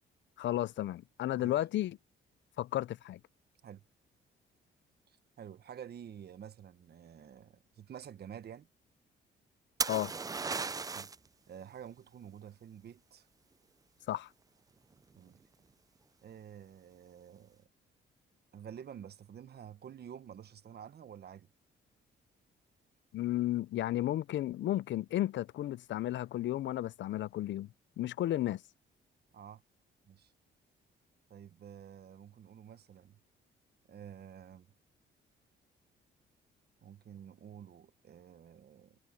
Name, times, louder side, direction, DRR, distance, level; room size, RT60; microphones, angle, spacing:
voice 1, 0.4-2.0 2.6-3.2 9.9-10.1 14.1-14.3 23.1-27.7 28.0-28.6, left 14 dB, 65° left, 0.5 m, -33 dB
voice 2, 5.1-8.7 10.9-11.1 11.5-13.3 15.1-15.4 16.2-17.7 18.5-21.5 29.3-29.6 30.1-30.3 31.3-33.2 33.9-34.7 36.8-39.0, right 9 dB, 55° right, 1.3 m, -50 dB
sound 1, 9.8-11.3 14.9-15.4, right 4 dB, 20° right, 0.4 m, -35 dB
cardioid pair, 90°, 20 cm